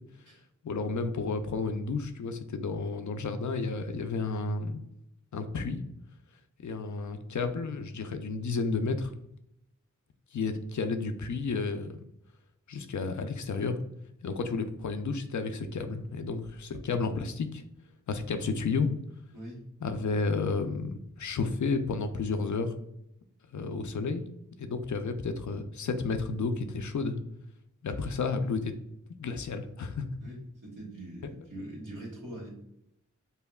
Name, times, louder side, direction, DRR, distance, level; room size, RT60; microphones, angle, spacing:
voice 1, 0.6-4.8 5.3-5.8 6.6-9.1 10.3-12.0 12.7-13.8 14.2-17.6 18.1-18.9 19.8-22.7 23.5-24.2 24.6-27.2 27.8-28.7 29.1-30.1, left 4 dB, 65° left, 8 dB, 0.5 m, -31 dB
voice 2, 30.2-32.5, right 1 dB, 75° right, -4 dB, 1.5 m, -43 dB
5.4 x 2.1 x 2.3 m, 0.79 s
wide cardioid pair, 50°, 31 cm